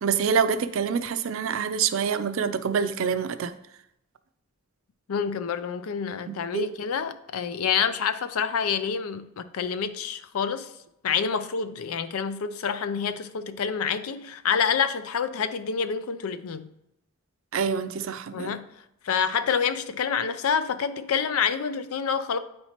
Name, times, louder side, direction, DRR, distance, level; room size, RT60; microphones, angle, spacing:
voice 1, 0.0-3.5 6.3-6.7 17.5-18.6, right 6 dB, 65° right, 0.4 m, -26 dB
voice 2, 5.1-10.7 11.0-16.7 18.3-18.7 19.0-22.4, left 6 dB, 90° left, 0.5 m, -27 dB
8.9 x 4.3 x 2.9 m
head